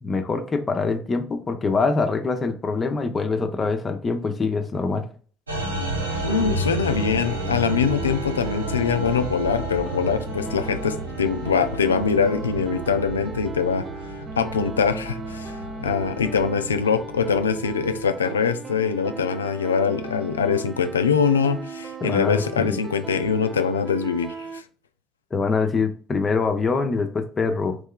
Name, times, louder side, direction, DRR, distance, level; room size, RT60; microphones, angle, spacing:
voice 1, 0.0-5.1 22.0-22.8 25.3-27.8, left 4 dB, 30° left, 6 dB, 0.6 m, -24 dB
sound 1, 5.5-18.1, right 1 dB, 85° right, 0.5 m, -32 dB
sound 2, 6.0-24.6, right 4 dB, 30° right, 0.4 m, -37 dB
voice 2, 6.2-13.8 14.4-24.6, left 6 dB, 80° left, 10 dB, 0.3 m, -23 dB
3.2 x 3.2 x 3.6 m, 0.42 s
figure-of-eight pair, 55°, 0 cm